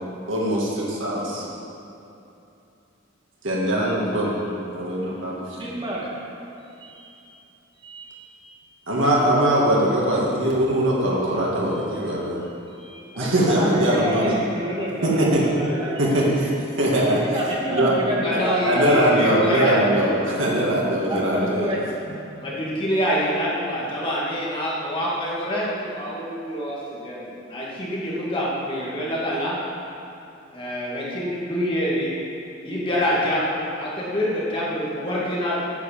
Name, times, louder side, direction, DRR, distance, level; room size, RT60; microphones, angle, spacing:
voice 1, 0.3-1.5 3.4-4.3 4.7-5.4 8.9-12.4 13.2-14.4 15.0-15.4 16.0-16.5 16.8-17.4 17.7-17.9 18.6-21.7 22.1-22.2, right 1 dB, 70° right, -4 dB, 2.3 m, -21 dB
voice 2, 5.6-6.0 7.8-8.1 12.8-16.3 17.2-18.9 21.1-21.8, right 1 dB, 25° right, -5 dB, 2.4 m, -28 dB
voice 3, 18.2-20.5 22.4-27.2 27.5-29.6 30.5-32.1 32.6-35.6, equal, 25° left, -6 dB, 2.3 m, -26 dB
9.6 x 7.6 x 7.5 m, 2.8 s
head